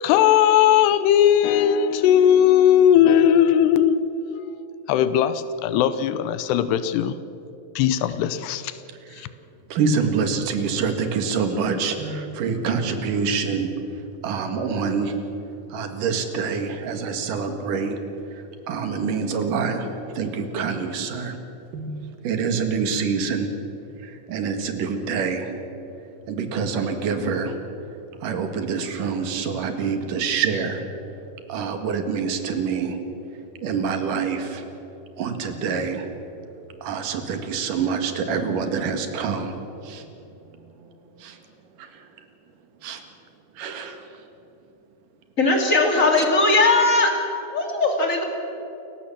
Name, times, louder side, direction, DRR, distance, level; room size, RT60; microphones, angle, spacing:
voice 1, 0.0-4.0 4.9-7.2 7.8-8.7 9.2-9.3, left 10 dB, 90° left, 12 dB, 2.9 m, -18 dB
voice 2, 9.7-13.7 14.2-15.1 15.7-18.0 18.7-21.4 21.7-21.9 22.2-23.5 24.0-25.5 26.3-27.5 28.2-30.8 31.5-33.0 33.6-34.6 35.2-36.1 36.8-39.5 39.8-40.0 41.2-41.4 42.8-43.0 43.6-44.0, right 5 dB, 60° right, 7 dB, 3.1 m, -26 dB
voice 3, 45.4-47.2 47.5-48.2, left 2 dB, 25° left, 2 dB, 2.3 m, -19 dB
28.5 x 16.0 x 7.3 m, 2.9 s
omnidirectional pair, 4.6 m